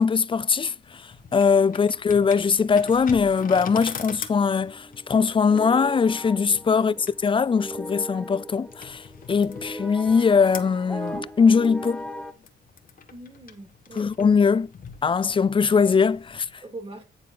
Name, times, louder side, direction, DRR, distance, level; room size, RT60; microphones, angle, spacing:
voice 1, 0.0-12.0 14.0-14.7 15.0-16.5, left 5 dB, 25° left, 0.4 m, -21 dB
sound 1, 0.8-16.5, left 6 dB, 45° left, 1.4 m, -43 dB
sound 2, 4.3-12.3, equal, 5° left, 0.9 m, -38 dB
voice 2, 13.1-14.1 16.6-17.0, right 2 dB, 30° right, 3.5 m, -42 dB
9.5 x 4.1 x 5.1 m
cardioid pair, 90°, 20 cm